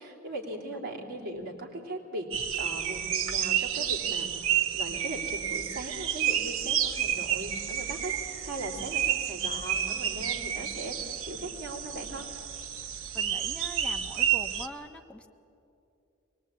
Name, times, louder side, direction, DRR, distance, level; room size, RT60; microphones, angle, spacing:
voice 1, 0.0-2.3 2.6-12.2, right 1 dB, 50° right, 0 dB, 3.4 m, -39 dB
sound 1, 2.3-14.7, right 9 dB, 90° right, 1.0 m, -30 dB
voice 2, 13.1-15.3, equal, 5° left, 4 dB, 1.1 m, -43 dB
24.0 x 20.5 x 8.8 m, 2.8 s
head